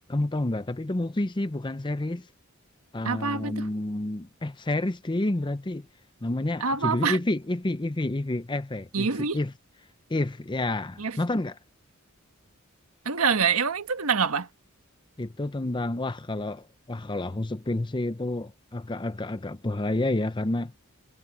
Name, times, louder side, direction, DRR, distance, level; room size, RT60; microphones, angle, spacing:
voice 1, 0.1-2.3 2.9-5.9 6.2-9.5 10.1-11.6 15.2-20.7, left 2 dB, 20° left, 0.7 m, -29 dB
voice 2, 3.0-3.7 6.6-7.2 8.9-9.4 11.0-11.2 13.0-14.5, right 5 dB, 90° right, 1.4 m, -25 dB
head